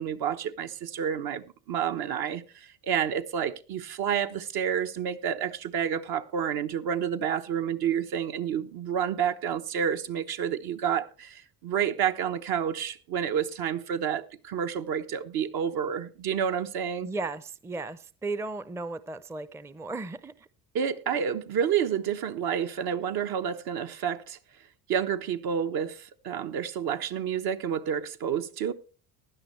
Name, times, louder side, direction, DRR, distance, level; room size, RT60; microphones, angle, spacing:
voice 1, 0.0-17.1 20.7-24.4 24.9-28.7, right 8 dB, 60° right, 1.1 m, -29 dB
voice 2, 17.0-20.5, right 3 dB, 5° right, 0.5 m, -35 dB
16.0 x 11.0 x 3.2 m
supercardioid pair, 90°, 41 cm